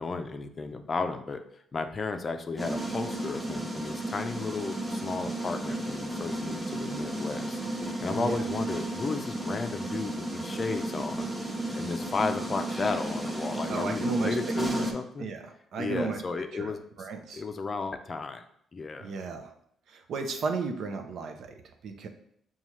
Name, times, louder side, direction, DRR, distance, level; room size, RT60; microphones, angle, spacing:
voice 1, 0.0-11.3 11.7-15.3 15.8-17.1 17.3-18.4 18.7-19.1, left 4 dB, 40° left, 7 dB, 0.4 m, -34 dB
sound 1, 2.6-14.9, right 1 dB, 5° right, 0.8 m, -33 dB
voice 2, 8.1-8.4 13.7-14.9 15.2-16.2 16.5-16.7 17.0-17.4 19.0-19.5 19.9-22.1, right 4 dB, 70° right, 5 dB, 0.6 m, -34 dB
5.5 x 2.3 x 3.1 m, 0.69 s
cardioid pair, 90°, 0 cm